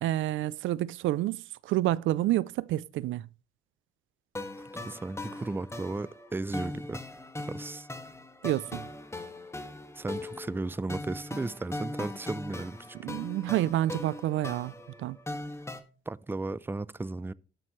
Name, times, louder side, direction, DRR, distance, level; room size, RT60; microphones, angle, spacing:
voice 1, 0.0-3.2 8.4-8.8 13.0-14.7 15.0-15.2, right 14 dB, 80° right, 0.5 m, -29 dB
sound 1, 4.4-15.8, left 2 dB, 15° left, 1.7 m, -40 dB
voice 2, 4.7-7.0 7.5-7.9 10.0-13.0 16.1-17.3, right 2 dB, 10° right, 0.5 m, -35 dB
18.5 x 6.3 x 3.1 m
cardioid pair, 90°, 20 cm